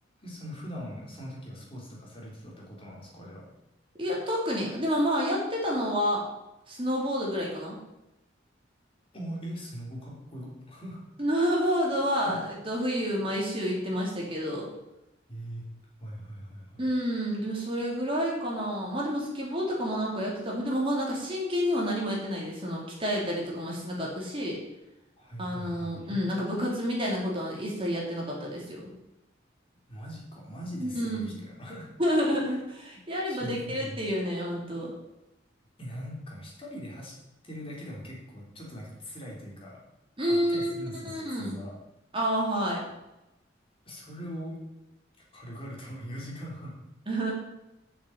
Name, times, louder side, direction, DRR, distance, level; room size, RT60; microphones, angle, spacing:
voice 1, 0.2-3.5 9.1-11.0 12.2-12.4 15.3-15.6 16.0-16.8 25.2-26.2 29.9-31.9 33.3-34.0 35.8-37.1 37.4-39.8 40.3-41.8 43.9-44.6 45.3-46.8, equal, 30° left, -3 dB, 3.6 m, -41 dB
voice 2, 4.0-6.2 6.7-7.8 11.2-14.7 16.8-24.6 25.4-28.9 30.8-31.4 32.0-34.9 40.2-40.7 41.0-41.6 42.1-42.8 47.1-47.3, equal, 30° right, -3 dB, 3.5 m, -29 dB
8.6 x 7.5 x 8.6 m, 0.93 s
head